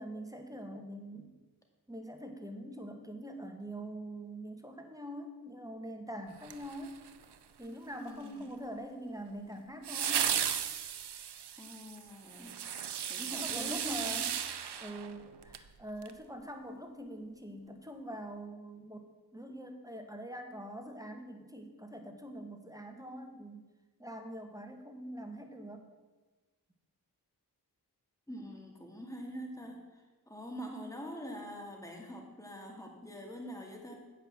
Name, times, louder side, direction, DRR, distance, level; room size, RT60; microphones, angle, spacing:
voice 1, 0.0-1.4 1.9-7.0 7.6-10.3 13.3-14.3 14.8-19.1 19.3-23.7 24.0-25.9, right 1 dB, 10° right, 4 dB, 1.4 m, -44 dB
spinning firework, 6.4-7.3 9.8-15.7 16.0-16.1, right 8 dB, 90° right, 0.6 m, -35 dB
voice 2, 8.0-8.6 11.6-12.5 13.1-14.3 28.3-29.8 30.3-33.9, equal, 10° left, 1 dB, 2.2 m, -44 dB
8.3 x 5.6 x 7.1 m, 1.2 s
cardioid pair, 45°, 39 cm